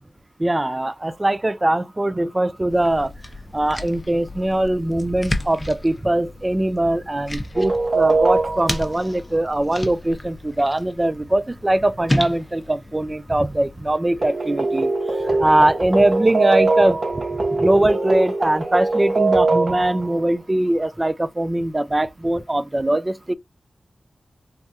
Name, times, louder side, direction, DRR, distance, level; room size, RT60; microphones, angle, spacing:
voice 1, 0.4-3.1 3.5-14.9 15.4-17.0 17.6-23.3, right 1 dB, 25° right, 0.3 m, -21 dB
sound 1, 2.7-13.9, left 1 dB, 25° left, 0.6 m, -32 dB
sound 2, 7.5-8.9 14.2-20.2, right 3 dB, 60° right, 1.1 m, -21 dB
3.5 x 2.1 x 2.6 m
wide cardioid pair, 75°, 0 cm